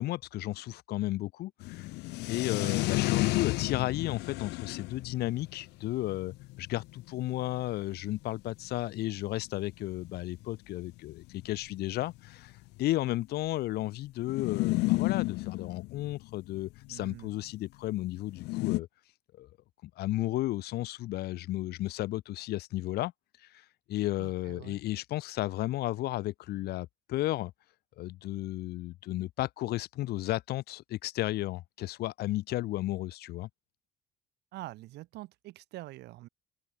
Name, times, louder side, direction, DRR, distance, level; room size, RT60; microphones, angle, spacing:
voice 1, 0.0-1.9 2.2-12.5 12.8-18.9 19.4-19.5 19.8-23.1 23.4-27.5 28.0-33.5, left 16 dB, 70° left, 0.7 m, -33 dB
sound 1, 1.6-7.7 8.4-8.5 8.6-8.7 8.9-9.2 10.0-10.1 10.4-10.5 11.3-12.8 14.3-16.9 18.3-18.8, left 21 dB, 90° left, 1.1 m, -32 dB
voice 2, 16.9-17.3 24.2-24.8 34.5-36.3, right 17 dB, 80° right, 2.2 m, -45 dB
cardioid pair, 110°, 17 cm